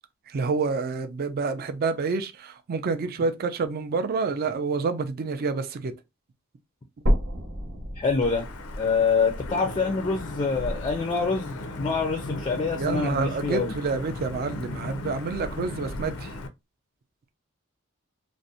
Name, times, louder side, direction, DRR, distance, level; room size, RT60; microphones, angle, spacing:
voice 1, 0.3-5.9 12.8-16.3, right 4 dB, 45° right, 0.4 m, -28 dB
sound 1, 7.1-11.1 11.6-11.7 12.3-12.4 12.7-12.8 13.6-13.7, equal, 75° right, 1.0 m, -30 dB
voice 2, 8.0-8.5 8.8-13.7, left 4 dB, 25° left, 0.4 m, -26 dB
Wind / Thunder / Rain, 8.2-16.5, left 2 dB, 80° left, 0.5 m, -36 dB
2.5 x 2.1 x 2.6 m
head